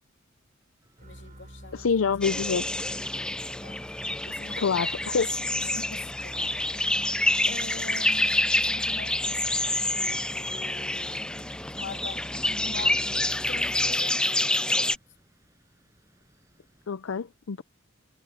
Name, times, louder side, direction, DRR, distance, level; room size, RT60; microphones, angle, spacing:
sound 1, 0.8-16.9, equal, 15° right, 7.2 m, -64 dB
voice 1, 1.0-1.9 3.6-3.8 4.2-5.2 5.6-11.5 11.7-13.0 13.5-14.3 14.8-15.0, left 3 dB, 60° left, 2.6 m, -44 dB
sound 2, 1.0-14.4, equal, 40° right, 4.9 m, -48 dB
voice 2, 1.7-2.6 4.6-5.3 16.9-17.6, left 5 dB, 80° left, 0.5 m, -26 dB
sound 3, 2.2-15.0, left 1 dB, 5° left, 0.3 m, -27 dB
head